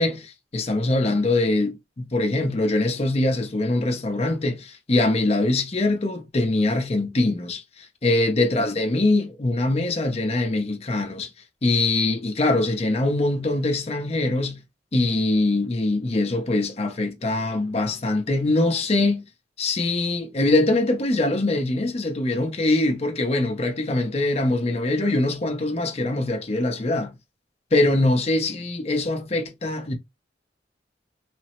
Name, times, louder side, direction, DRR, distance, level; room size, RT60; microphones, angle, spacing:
voice 1, 0.0-11.3 11.6-14.6 14.9-19.2 19.6-27.1 27.7-29.9, left 2 dB, 35° left, 0.6 m, -23 dB
3.2 x 2.0 x 2.9 m
head